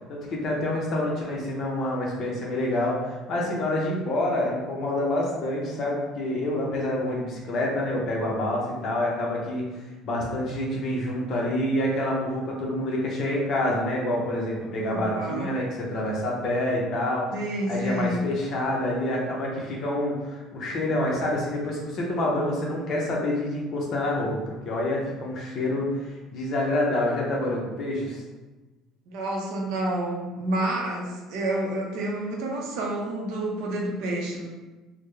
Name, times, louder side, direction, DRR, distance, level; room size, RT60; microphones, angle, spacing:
voice 1, 0.1-9.7 10.0-17.3 17.7-28.2, left 1 dB, 40° left, -2 dB, 0.7 m, -27 dB
voice 2, 14.9-15.5 17.3-18.2 29.1-34.5, right 1 dB, 70° right, 0 dB, 0.6 m, -29 dB
3.5 x 2.1 x 3.2 m, 1.2 s
cardioid pair, 170°, 0 cm